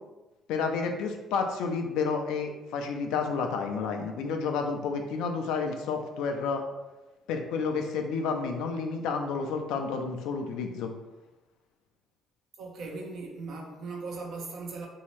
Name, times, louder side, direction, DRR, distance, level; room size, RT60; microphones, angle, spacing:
voice 1, 0.5-6.6 7.3-10.9, left 5 dB, 70° left, 4 dB, 0.4 m, -30 dB
voice 2, 12.6-14.9, right 3 dB, 60° right, 0 dB, 0.7 m, -38 dB
3.1 x 2.7 x 3.0 m, 1.1 s
hypercardioid pair, 50°, 0 cm